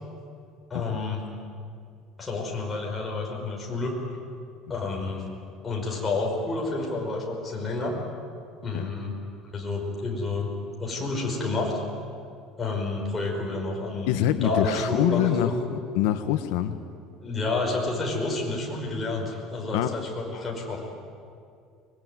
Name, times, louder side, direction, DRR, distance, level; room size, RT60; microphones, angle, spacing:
voice 1, 0.7-1.2 2.2-3.9 4.7-5.3 5.6-7.9 8.6-9.1 9.4-10.5 10.8-11.7 12.6-15.5 17.2-20.8, left 3 dB, 15° left, -2 dB, 5.4 m, -29 dB
voice 2, 14.1-16.8 19.7-19.9, left 12 dB, 90° left, 8 dB, 1.2 m, -25 dB
24.0 x 22.0 x 9.5 m, 2.3 s
cardioid pair, 170°, 0 cm